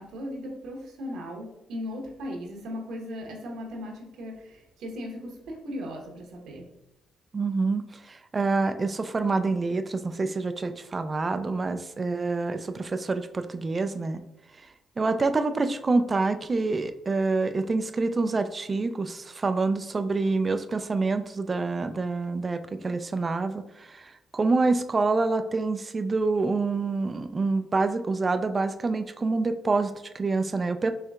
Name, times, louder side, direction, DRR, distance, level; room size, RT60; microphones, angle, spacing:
voice 1, 0.0-6.7, left 1 dB, 80° right, 0 dB, 1.0 m, -37 dB
voice 2, 7.3-14.2 15.0-30.9, right 3 dB, 30° right, 9 dB, 0.3 m, -27 dB
4.5 x 3.2 x 2.4 m, 0.93 s
cardioid pair, 90°, 0 cm